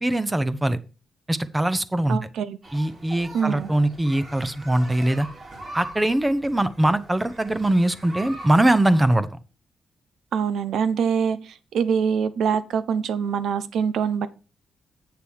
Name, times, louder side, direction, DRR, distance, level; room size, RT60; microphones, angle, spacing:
voice 1, 0.0-0.8 1.3-2.2 2.7-5.3 5.7-9.3, right 1 dB, 15° right, 14 dB, 0.8 m, -22 dB
voice 2, 2.1-2.6 3.3-3.7 10.3-14.3, right 7 dB, 80° right, 15 dB, 0.8 m, -24 dB
sound 1, 2.6-9.2, right 1 dB, 45° right, 3.9 m, -41 dB
7.9 x 6.8 x 4.7 m, 0.34 s
cardioid pair, 100°, 0 cm